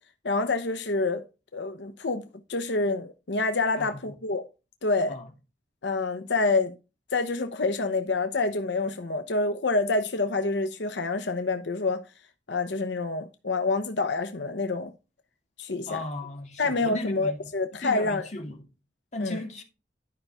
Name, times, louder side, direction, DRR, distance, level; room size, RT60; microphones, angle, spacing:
voice 1, 0.2-1.2 1.5-4.4 4.8-5.1 5.8-6.7 7.1-12.0 12.5-14.9 15.6-16.0 16.6-18.2 19.2-19.4, left 3 dB, 85° left, 0.8 m, -27 dB
voice 2, 3.8-4.2 5.1-5.3 15.9-17.4 17.8-18.6 19.1-19.6, left 2 dB, 40° left, 2.2 m, -35 dB
11.5 x 5.5 x 3.6 m
head